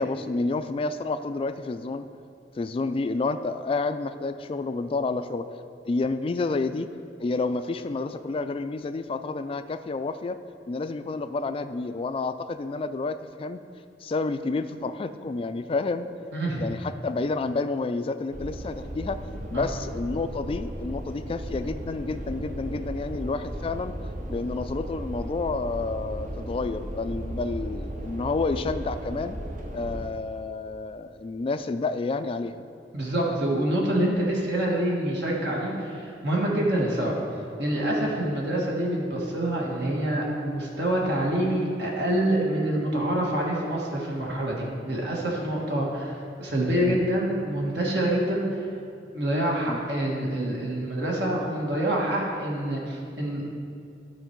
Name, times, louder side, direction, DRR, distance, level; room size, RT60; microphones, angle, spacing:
voice 1, 0.0-2.1 2.6-5.5 5.8-6.9 7.2-10.4 10.7-13.6 14.0-16.1 16.6-19.2 19.5-23.9 24.3-29.4 29.7-32.5 46.8-47.0 49.7-49.8, left 3 dB, 30° left, 10 dB, 0.3 m, -29 dB
voice 2, 16.3-16.7 19.5-19.6 32.9-37.1 37.6-48.4 49.1-53.5, right 1 dB, 65° right, -3 dB, 1.6 m, -26 dB
sound 1, 18.3-30.1, right 1 dB, 45° right, 0.8 m, -35 dB
13.0 x 4.5 x 4.5 m, 2.4 s
head